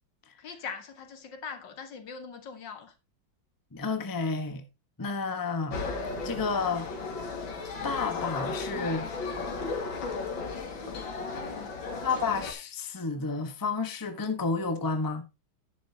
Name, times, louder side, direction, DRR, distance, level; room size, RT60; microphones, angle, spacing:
voice 1, 0.4-2.9 11.5-11.7, left 5 dB, 70° left, 2.2 m, -41 dB
voice 2, 3.7-4.6 5.0-5.8 6.2-6.9 7.8-9.1 12.0-15.2, left 4 dB, 15° left, 0.9 m, -30 dB
sound 1, 5.7-12.5, left 4 dB, 85° left, 2.8 m, -35 dB
10.5 x 9.9 x 2.8 m
omnidirectional pair, 2.1 m